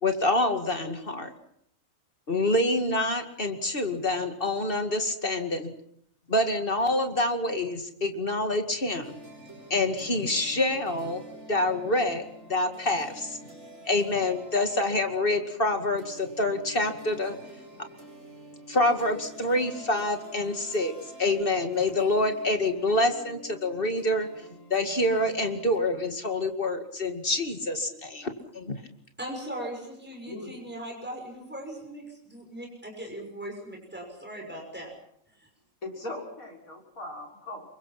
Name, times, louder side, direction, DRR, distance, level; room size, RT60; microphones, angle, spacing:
voice 1, 0.0-1.3 2.3-5.7 6.3-9.2 9.7-11.2 11.5-12.2 12.5-13.4 13.9-17.4 18.7-20.9 21.2-24.3 24.7-28.7, left 2 dB, 40° left, 6 dB, 2.4 m, -26 dB
sound 1, 9.0-25.8, right 1 dB, 55° right, 8.4 m, -47 dB
voice 2, 29.2-34.9 35.4-35.5, right 1 dB, 5° right, 1 dB, 6.3 m, -39 dB
voice 3, 35.8-37.6, left 2 dB, 80° left, -1 dB, 6.7 m, -39 dB
28.0 x 24.0 x 5.9 m, 0.71 s
omnidirectional pair, 1.5 m